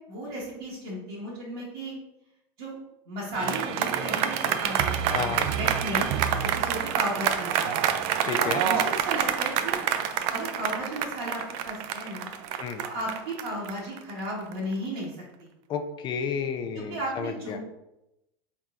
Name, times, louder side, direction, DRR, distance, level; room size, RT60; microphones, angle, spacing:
voice 1, 0.1-1.9 2.6-2.8 3.1-6.1 6.4-7.8 8.4-9.8 10.3-12.3 12.8-15.5 16.7-17.6, right 1 dB, 70° right, -7 dB, 1.1 m, -34 dB
sound 1, 3.3-14.7, right 9 dB, 50° right, 0.4 m, -27 dB
voice 2, 5.1-5.5 8.2-8.6 12.6-12.8 15.7-17.6, left 6 dB, 35° left, 8 dB, 0.5 m, -31 dB
4.3 x 3.5 x 2.5 m, 0.89 s
hypercardioid pair, 85°, 13 cm